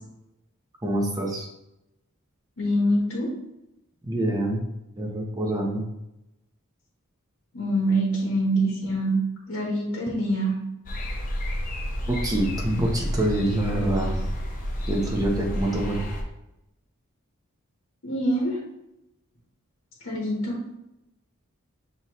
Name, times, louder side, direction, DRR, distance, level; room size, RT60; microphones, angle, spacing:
voice 1, 0.8-1.5 4.0-4.7 5.0-5.8 12.1-14.3 14.9-16.0, right 1 dB, 15° right, 0 dB, 0.7 m, -26 dB
voice 2, 2.6-3.3 7.5-9.1 9.5-10.5 18.0-18.6 20.0-20.7, right 1 dB, 75° left, -4 dB, 1.0 m, -25 dB
sound 1, 10.9-16.2, equal, 40° left, 0.7 m, -30 dB
6.0 x 2.8 x 3.0 m, 0.89 s
head